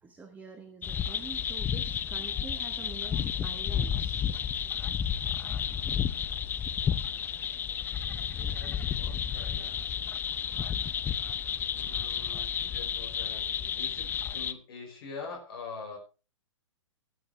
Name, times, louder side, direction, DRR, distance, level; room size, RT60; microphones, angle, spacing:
voice 1, 0.0-4.2, right 4 dB, 10° right, 8 dB, 1.3 m, -46 dB
sound 1, 0.8-14.5, left 8 dB, 10° left, 0.6 m, -32 dB
voice 2, 8.3-10.0 10.2-10.8 11.4-16.0, left 4 dB, 50° left, 1 dB, 5.1 m, -45 dB
19.0 x 8.7 x 3.2 m, 0.32 s
figure-of-eight pair, 120°, 16 cm